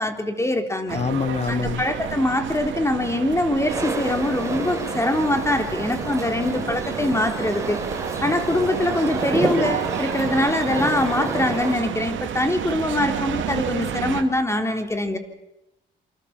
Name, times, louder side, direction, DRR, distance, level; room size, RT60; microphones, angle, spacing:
voice 1, 0.0-1.0 1.5-7.8 8.2-15.2, left 1 dB, 15° left, 3.6 m, -23 dB
voice 2, 0.9-1.8, left 6 dB, 35° left, 1.0 m, -25 dB
sound 1, 0.9-14.2, right 9 dB, 75° right, 2.7 m, -31 dB
sound 2, 3.7-11.7, right 2 dB, 15° right, 6.2 m, -29 dB
27.5 x 25.5 x 7.5 m
cardioid pair, 90°, 20 cm